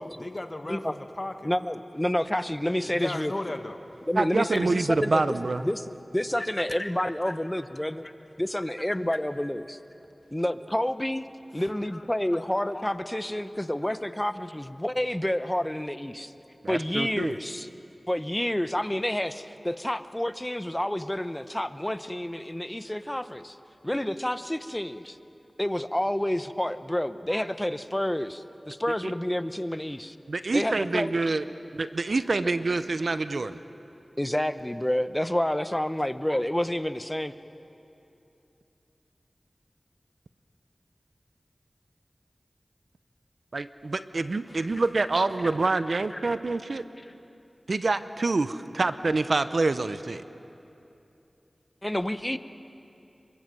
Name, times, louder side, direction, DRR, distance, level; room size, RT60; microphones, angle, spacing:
voice 1, 0.0-1.5 2.9-3.8 6.4-6.9 7.2-7.3 8.0-8.1 9.1-9.2 11.9-12.0 12.3-12.9 13.9-14.0 44.5-44.8 46.1-46.2 47.0-47.1, left 1 dB, 40° left, 6 dB, 1.7 m, -37 dB
voice 2, 1.4-3.3 4.1-5.2 5.6-5.8 6.1-8.0 8.4-9.8 10.3-11.3 11.5-16.3 16.7-17.7 18.1-23.6 23.8-25.2 25.6-30.2 30.5-31.1 34.2-37.3 51.8-52.4, left 1 dB, 15° left, 12 dB, 0.9 m, -29 dB
voice 3, 4.2-5.7 16.6-17.3 29.0-29.1 30.3-31.4 31.7-33.6 43.5-46.8 47.7-50.2, right 3 dB, 75° right, 12 dB, 0.8 m, -26 dB
27.0 x 24.0 x 7.8 m, 2.8 s
wide cardioid pair, 55°, 0 cm